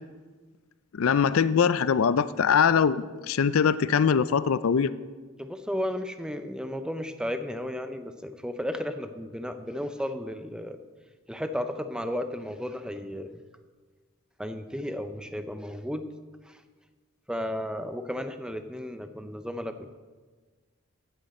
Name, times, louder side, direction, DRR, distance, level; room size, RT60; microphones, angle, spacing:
voice 1, 0.9-4.9, left 6 dB, 70° left, 16 dB, 0.4 m, -22 dB
voice 2, 5.4-10.8 11.3-13.4 14.4-16.1 16.5-16.6 17.3-19.9, equal, 5° right, 9 dB, 0.5 m, -34 dB
16.0 x 10.0 x 4.2 m, 1.4 s
head